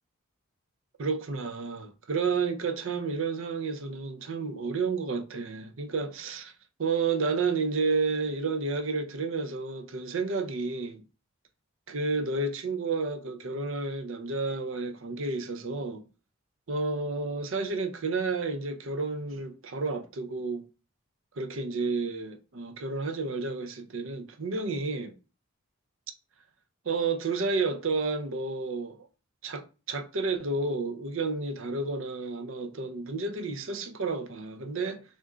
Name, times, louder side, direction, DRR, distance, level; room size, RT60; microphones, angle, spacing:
voice 1, 1.0-6.5 6.8-11.0 11.9-16.1 16.7-20.7 21.4-25.2 26.9-29.0 29.4-35.0, right 4 dB, 65° right, 0.6 m, -31 dB
3.5 x 2.5 x 3.6 m
head